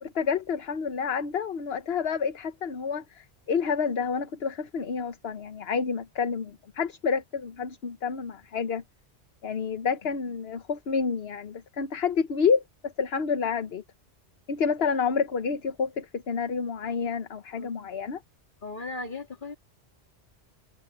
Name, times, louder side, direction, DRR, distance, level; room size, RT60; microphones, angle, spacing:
voice 1, 0.0-8.8 9.4-13.8 14.5-18.2, left 6 dB, 65° left, 1.2 m, -29 dB
voice 2, 18.6-19.6, left 3 dB, 50° left, 3.2 m, -37 dB
omnidirectional pair, 1.1 m